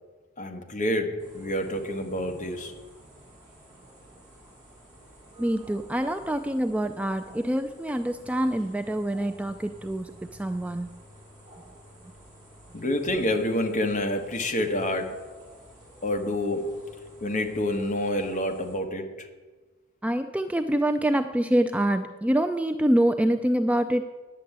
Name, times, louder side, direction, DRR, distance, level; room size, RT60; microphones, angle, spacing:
voice 1, 0.4-2.7 5.3-5.5 12.7-15.3 16.0-16.8 17.2-19.3, left 1 dB, 40° left, 4 dB, 1.3 m, -28 dB
sound 1, 1.2-18.8, equal, 20° right, 4.8 m, -52 dB
voice 2, 5.4-10.9 20.0-24.0, right 1 dB, 5° right, 7 dB, 0.3 m, -26 dB
9.9 x 6.8 x 8.6 m, 1.3 s
head